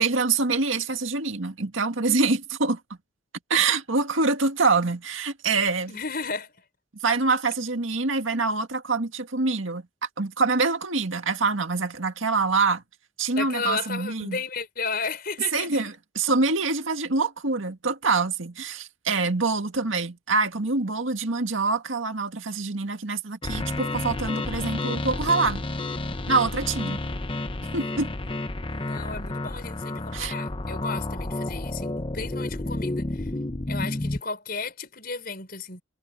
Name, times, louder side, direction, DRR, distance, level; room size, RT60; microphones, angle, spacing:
voice 1, 0.0-2.8 3.5-5.9 7.0-9.9 10.2-12.8 13.2-14.4 15.5-25.6 26.3-27.0 27.7-28.1 30.1-30.3, right 4 dB, 80° right, 2.0 m, -25 dB
voice 2, 5.9-6.5 13.4-15.9 28.7-33.3 33.7-35.8, left 4 dB, 50° left, 5.6 m, -34 dB
sound 1, 23.4-34.2, left 2 dB, 25° left, 0.8 m, -30 dB
head